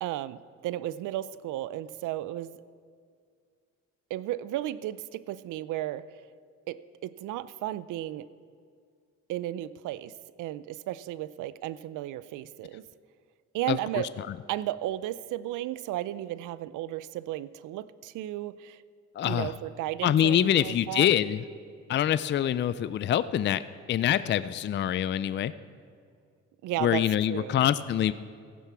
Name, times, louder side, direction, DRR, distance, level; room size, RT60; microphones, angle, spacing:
voice 1, 0.0-2.6 4.1-6.0 6.7-8.3 9.3-12.8 13.5-14.1 14.5-18.8 19.2-21.1 26.6-27.6, right 14 dB, 85° right, 17 dB, 0.5 m, -34 dB
voice 2, 19.2-19.5 20.0-21.4 21.9-23.6 23.9-25.5 26.8-28.1, left 10 dB, 40° left, 15 dB, 0.4 m, -25 dB
15.0 x 10.0 x 6.0 m, 2.1 s
cardioid pair, 90°, 30 cm